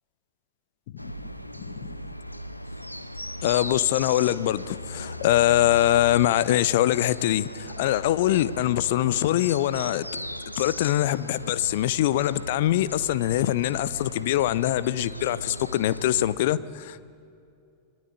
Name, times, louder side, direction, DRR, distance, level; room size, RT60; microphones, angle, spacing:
sound 1, 1.0-16.4, equal, 90° left, 0.9 m, -38 dB
voice 1, 1.6-2.0 3.4-10.1 10.6-17.1, left 14 dB, 55° left, 18 dB, 0.7 m, -23 dB
25.5 x 20.0 x 8.9 m, 2.5 s
figure-of-eight pair, 90°, 0 cm